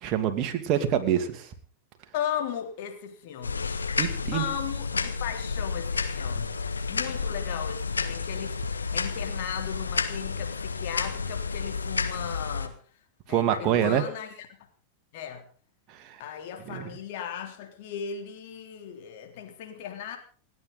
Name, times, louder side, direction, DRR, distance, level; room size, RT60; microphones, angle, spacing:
voice 1, 0.0-1.5 4.0-4.4 13.3-14.0 15.9-16.2 16.7-16.9, right 9 dB, 35° right, 6 dB, 2.5 m, -26 dB
voice 2, 2.1-3.7 4.3-12.8 13.3-14.5 15.1-15.5 16.2-20.2, left 9 dB, 50° left, 4 dB, 3.5 m, -36 dB
sound 1, 3.4-12.7, left 5 dB, 75° left, 1.6 m, -31 dB
29.0 x 9.8 x 4.1 m, 0.42 s
figure-of-eight pair, 90°, 0 cm